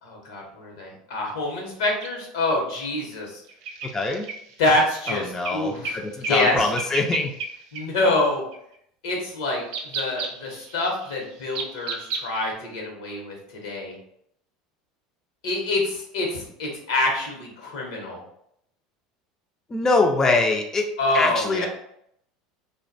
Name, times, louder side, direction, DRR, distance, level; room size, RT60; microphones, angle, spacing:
voice 1, 0.0-3.4 4.6-6.7 7.7-8.4 9.0-13.9 15.4-18.2 21.0-21.7, left 2 dB, 85° left, 0 dB, 0.8 m, -26 dB
sound 1, 2.0-2.1 3.5-6.0 6.2-6.5 6.7-7.5 7.7-7.8 8.5-8.7 9.6-12.5, right 4 dB, 70° right, 0.4 m, -33 dB
voice 2, 3.9-4.2 5.1-7.3 19.7-20.9 21.1-21.7, left 3 dB, 20° left, 2 dB, 0.3 m, -23 dB
2.5 x 2.2 x 2.5 m, 0.71 s
supercardioid pair, 100°, 2 cm